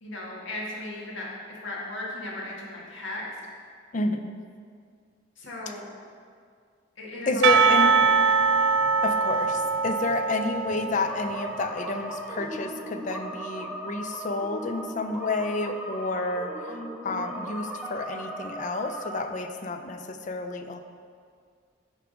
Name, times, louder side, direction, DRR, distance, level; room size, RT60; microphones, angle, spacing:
voice 1, 0.0-3.3 5.4-5.9 7.0-7.7 8.0-8.1, left 1 dB, 90° left, -4 dB, 1.6 m, -36 dB
voice 2, 3.9-4.4 5.7-5.8 7.3-8.1 9.0-20.8, left 3 dB, 40° left, 7 dB, 0.4 m, -30 dB
Percussion / Church bell, 7.4-11.8, right 5 dB, 65° right, 0.3 m, -23 dB
sound 1, 11.1-19.2, equal, 5° right, 0.7 m, -37 dB
9.7 x 3.5 x 4.9 m, 2.1 s
head